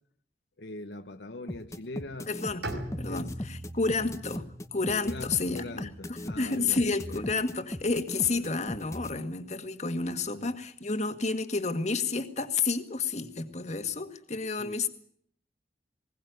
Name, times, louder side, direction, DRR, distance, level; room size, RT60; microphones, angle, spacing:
voice 1, 0.6-2.3 3.1-3.3 4.0-4.1 5.0-7.2 8.2-8.5 10.3-10.5 14.6-14.8, left 2 dB, 80° left, 1.1 m, -42 dB
sound 1, 1.5-9.1, left 1 dB, 15° left, 1.0 m, -37 dB
voice 2, 2.3-2.7 3.0-4.4 4.7-14.9, left 4 dB, 40° left, 1.8 m, -30 dB
Bowed string instrument, 2.6-6.6, right 1 dB, 90° right, 5.0 m, -41 dB
21.0 x 18.0 x 9.4 m
head